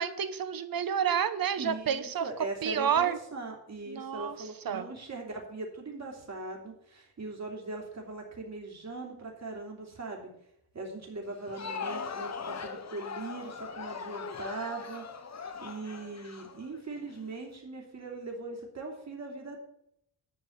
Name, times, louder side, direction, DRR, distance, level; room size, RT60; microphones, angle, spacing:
voice 1, 0.0-2.3 2.6-3.2 3.9-4.4 4.6-4.9, right 8 dB, 60° right, 12 dB, 0.9 m, -29 dB
voice 2, 1.6-10.3 10.7-15.0 15.6-19.6, right 3 dB, 40° right, 0 dB, 2.8 m, -40 dB
Crowd, 11.3-17.2, left 5 dB, 40° left, 0.9 m, -40 dB
11.0 x 4.6 x 7.9 m, 0.74 s
wide cardioid pair, 135°, 40 cm